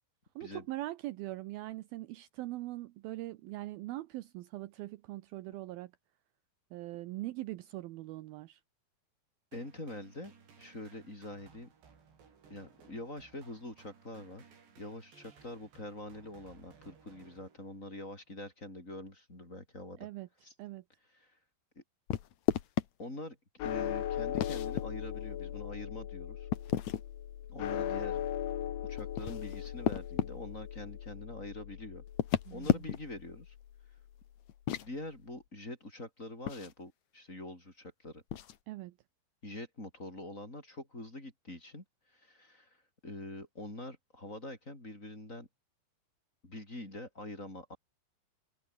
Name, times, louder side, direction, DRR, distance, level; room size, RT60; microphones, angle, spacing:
voice 1, 0.4-5.9 6.7-8.6 20.0-20.3 20.6-20.8 32.5-32.9 38.7-38.9, right 17 dB, 85° right, 2.1 m, -41 dB
voice 2, 9.5-11.7 12.5-14.5 14.8-20.1 20.4-20.5 21.1-21.4 21.8-21.9 23.0-23.4 23.6-26.5 27.5-28.2 28.9-32.0 32.5-33.5 34.8-38.2 39.4-42.8 43.0-45.5 46.4-47.8, left 1 dB, 15° left, 5.8 m, -45 dB
sound 1, 9.5-18.0, right 6 dB, 65° right, 7.4 m, -60 dB
sound 2, 22.1-22.9 24.3-24.8 26.5-27.1 29.0-30.3 32.1-33.2 34.5-34.9 36.5-36.7 38.3-38.6, left 11 dB, 65° left, 1.9 m, -32 dB
sound 3, 23.6-34.0, left 10 dB, 85° left, 4.8 m, -39 dB
omnidirectional pair, 5.3 m